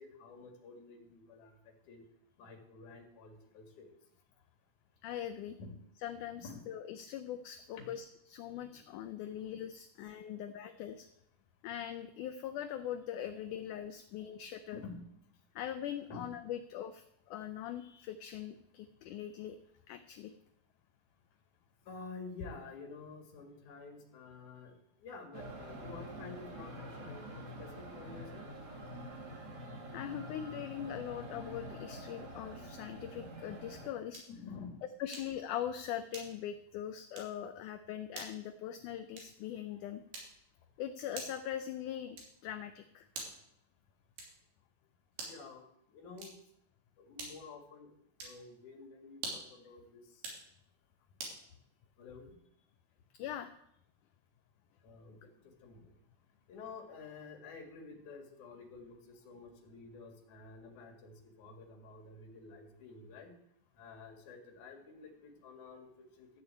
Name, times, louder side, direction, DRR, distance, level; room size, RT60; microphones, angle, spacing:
voice 1, 0.0-1.5 1.9-2.0 2.4-3.9 5.6-5.8 6.3-6.7 7.7-7.8 9.2-9.5 10.2-10.3 13.3-13.8 14.7-15.1 16.1-16.3 21.9-24.7 25.0-28.4 34.3-34.8 45.2-45.6 45.9-46.3 47.0-47.9 48.2-50.0 52.0-52.4 54.8-55.9 56.5-63.3 63.8-65.9 66.2-66.3, left 4 dB, 60° left, 3 dB, 3.4 m, -50 dB
voice 2, 5.0-5.6 6.0-11.1 11.6-14.8 15.6-19.6 19.9-20.3 29.9-34.2 35.0-40.0 40.8-43.1 53.2-53.5, left 10 dB, 75° left, 8 dB, 1.9 m, -41 dB
sound 1, 25.3-33.9, right 1 dB, 35° right, 1.9 m, -46 dB
sound 2, 34.1-34.4 35.1-35.4 36.1-36.6 37.1-37.4 38.1-38.4 39.1-39.5 40.1-40.5 41.1-41.5 42.1-42.5 43.1-43.5 44.1-44.5 45.1-45.5 46.1-46.5 47.2-47.6 48.1-48.4 49.1-49.6 50.1-50.5 51.2-51.4, right 3 dB, 85° right, 4.9 m, -46 dB
14.0 x 6.8 x 8.4 m, 0.74 s
omnidirectional pair, 4.1 m